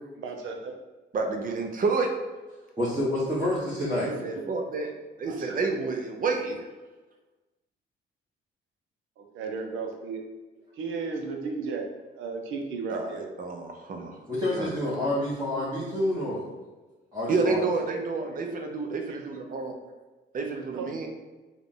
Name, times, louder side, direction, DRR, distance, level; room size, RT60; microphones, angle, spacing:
voice 1, 0.2-0.7 5.3-5.6 9.2-10.2 10.8-11.9 12.1-13.3 19.1-19.2 20.7-21.0, right 4 dB, 85° right, 4 dB, 0.7 m, -34 dB
voice 2, 1.1-2.1 4.0-4.9 5.2-6.6 12.9-14.2 14.6-14.7 17.3-19.7 20.3-21.1, right 4 dB, 45° right, 4 dB, 0.7 m, -29 dB
voice 3, 2.8-4.1 14.3-16.4 17.1-17.6, left 1 dB, 15° right, -9 dB, 1.2 m, -28 dB
3.7 x 2.4 x 3.8 m, 1.2 s
cardioid pair, 90°, 20 cm